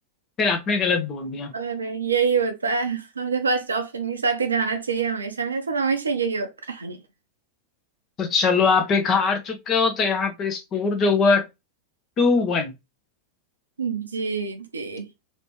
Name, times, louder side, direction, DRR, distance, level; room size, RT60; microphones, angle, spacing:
voice 1, 0.4-1.5 8.2-11.5 12.2-12.7, left 4 dB, 30° left, 0.9 m, -21 dB
voice 2, 1.5-7.0 13.8-15.1, right 5 dB, 75° right, 0.6 m, -25 dB
3.2 x 2.9 x 3.1 m
figure-of-eight pair, 90°, 0 cm